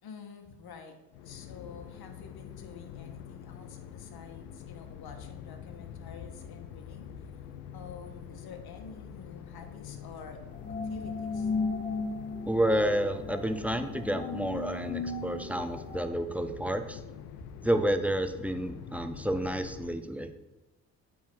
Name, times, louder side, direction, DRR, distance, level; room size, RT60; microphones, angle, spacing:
voice 1, 0.0-1.0 1.2-7.1 7.7-10.4 10.8-11.5, left 6 dB, 55° left, 6 dB, 1.4 m, -48 dB
sound 1, 1.1-20.0, left 8 dB, 75° left, 0.7 m, -45 dB
sound 2, 10.5-16.0, left 4 dB, 15° left, 2.0 m, -36 dB
voice 2, 12.5-17.0 17.6-20.3, right 1 dB, 5° right, 8 dB, 0.8 m, -30 dB
8.5 x 3.8 x 6.0 m, 0.99 s
hypercardioid pair, 45°, 44 cm